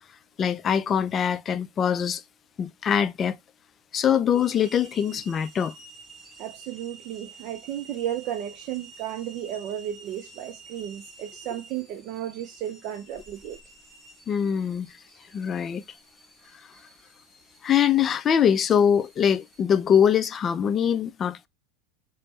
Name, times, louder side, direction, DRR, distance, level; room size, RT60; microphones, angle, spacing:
voice 1, 0.4-2.2 2.6-3.4 3.9-5.7 14.3-14.9 15.3-15.8 17.6-21.5, left 8 dB, 35° left, 0.3 m, -23 dB
sound 1, 4.3-19.6, right 4 dB, 15° right, 1.8 m, -50 dB
voice 2, 6.4-13.6, right 11 dB, 55° right, 0.4 m, -34 dB
3.3 x 2.0 x 3.8 m
hypercardioid pair, 90°, 0 cm